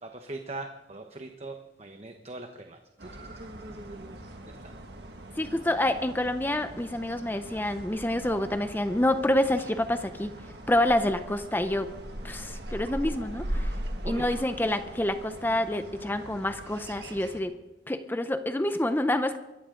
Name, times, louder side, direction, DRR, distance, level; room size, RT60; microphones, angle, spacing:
voice 1, 0.0-4.2 4.5-4.7 14.0-14.3, right 2 dB, 35° right, 5 dB, 1.0 m, -41 dB
sound 1, 3.0-17.4, right 1 dB, 70° right, 1.8 m, -40 dB
voice 2, 5.4-10.3 10.7-11.9 12.2-13.7 14.1-17.5 17.9-19.4, left 1 dB, 10° left, 9 dB, 0.6 m, -27 dB
23.0 x 14.5 x 3.8 m, 1.0 s
head